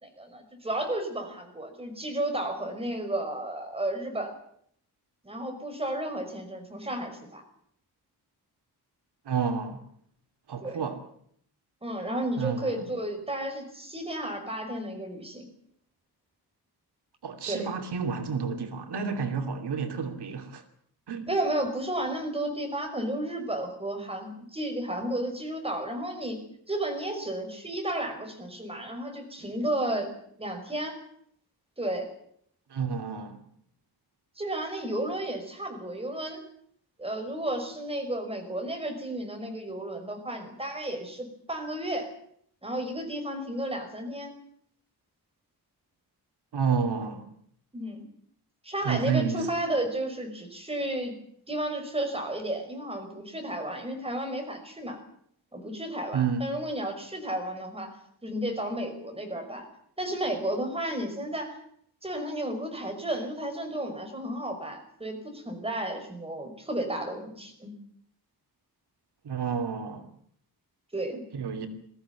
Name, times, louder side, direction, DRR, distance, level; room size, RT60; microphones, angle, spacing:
voice 1, 0.0-4.3 5.2-7.4 10.6-10.8 11.8-15.5 17.5-17.7 21.3-26.4 26.7-30.1 30.4-31.0 31.8-32.1 34.4-36.4 37.0-42.1 42.6-44.3 47.7-48.0 48.6-51.1 51.5-55.0 55.5-57.9 58.2-59.7 60.0-61.6 62.0-67.7 70.9-71.2, right 1 dB, 15° right, 5.6 m, -32 dB
voice 2, 9.2-9.8 10.5-11.0 12.4-12.8 17.2-20.6 21.1-21.3 32.7-33.4 46.5-47.3 48.8-49.5 56.1-56.5 69.2-70.1 71.3-71.7, right 6 dB, 85° right, 2.8 m, -30 dB
22.0 x 15.5 x 9.7 m
wide cardioid pair, 155°, 39 cm